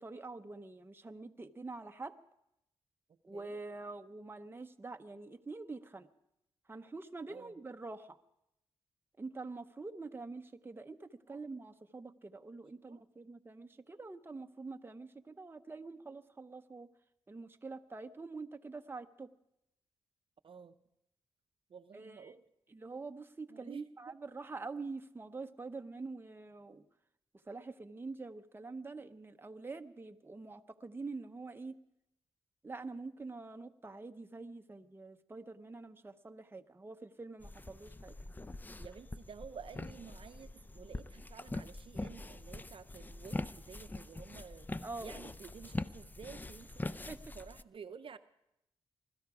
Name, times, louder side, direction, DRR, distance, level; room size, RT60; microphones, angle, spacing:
voice 1, 0.0-2.2 3.2-6.1 6.7-8.2 9.2-16.9 17.3-19.3 21.9-22.4 22.7-26.9 27.5-31.8 32.6-38.2 44.8-45.1 46.9-47.2, right 3 dB, 20° right, 7 dB, 0.7 m, -46 dB
voice 2, 7.3-7.6 11.3-11.4 12.9-13.0 20.4-20.8 21.7-22.4 23.5-24.1 38.8-44.7 45.0-46.7 47.3-48.2, right 6 dB, 55° right, 10 dB, 0.7 m, -51 dB
sound 1, 37.4-47.6, left 2 dB, 15° left, 0.5 m, -43 dB
21.0 x 13.0 x 4.8 m, 0.83 s
cardioid pair, 70°, 11 cm